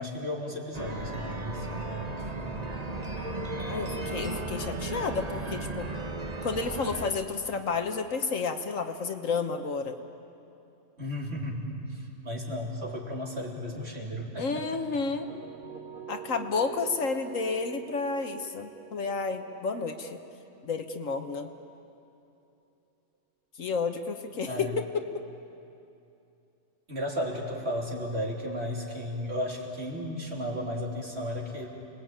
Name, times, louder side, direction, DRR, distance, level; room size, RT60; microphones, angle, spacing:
voice 1, 0.0-2.6 11.0-15.0 24.5-24.7 26.9-31.7, equal, 45° right, -2 dB, 3.7 m, -34 dB
sound 1, 0.7-7.1, right 2 dB, 30° right, 1.3 m, -35 dB
voice 2, 3.6-5.9 6.4-10.0 14.4-15.3 16.1-20.2 20.6-21.5 23.6-25.2, left 4 dB, 65° left, 7 dB, 1.5 m, -31 dB
sound 2, 15.2-21.1, right 8 dB, 90° right, 4.0 m, -45 dB
29.5 x 20.5 x 8.9 m, 2.7 s
omnidirectional pair, 1.5 m